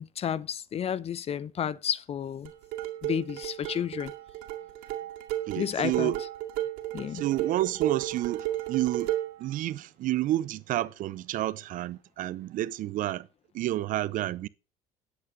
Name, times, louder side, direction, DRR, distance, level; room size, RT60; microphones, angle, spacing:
voice 1, 0.0-2.5 3.0-4.1 5.6-6.1 6.9-7.2, left 9 dB, 40° left, 0.7 m, -31 dB
sound 1, 2.4-9.4, right 13 dB, 85° right, 2.1 m, -33 dB
voice 2, 5.5-6.2 7.1-9.1 9.4-13.3 13.5-14.5, right 15 dB, 60° right, 0.7 m, -30 dB
10.5 x 8.2 x 5.1 m
cardioid pair, 105°, 15 cm